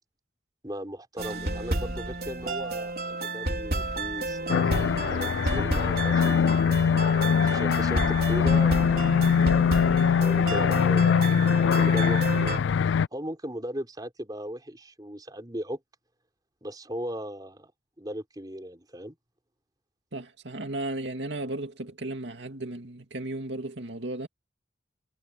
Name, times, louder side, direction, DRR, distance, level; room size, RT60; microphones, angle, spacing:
voice 1, 0.6-6.4 7.4-9.1 10.2-11.5 11.8-12.6 13.1-15.8 16.6-17.7 18.0-19.2, equal, 20° right, 4.4 m, -37 dB
sound 1, 1.2-12.6, right 2 dB, 55° right, 4.3 m, -32 dB
sound 2, 4.5-13.1, left 6 dB, 80° left, 0.3 m, -22 dB
voice 2, 20.1-24.3, right 2 dB, 75° right, 2.3 m, -35 dB
head